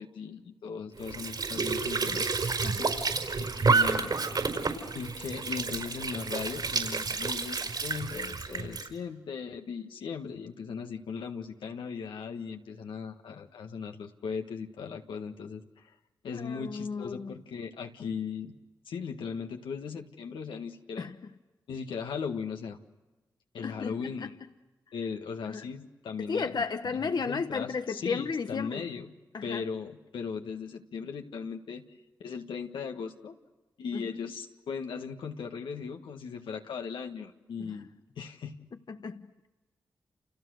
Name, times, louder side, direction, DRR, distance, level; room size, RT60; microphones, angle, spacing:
voice 1, 0.0-2.2 3.5-4.4 4.9-16.0 16.2-18.6 18.9-21.1 21.7-22.8 23.5-24.4 24.9-27.0 27.3-29.1 29.4-31.8 32.2-33.3 33.8-37.9 38.2-38.7, left 6 dB, 85° left, 1.8 m, -38 dB
Squeak / Sink (filling or washing) / Trickle dribble, 1.0-8.9, right 4 dB, 60° right, 4.9 m, -30 dB
voice 2, 2.6-3.0 16.3-17.3 21.0-21.2 23.6-24.3 25.4-25.6 26.3-28.8 29.3-29.6 33.9-34.0 37.6-37.7 38.9-39.5, left 5 dB, 60° left, 1.1 m, -34 dB
29.5 x 29.0 x 6.6 m
cardioid pair, 45°, 8 cm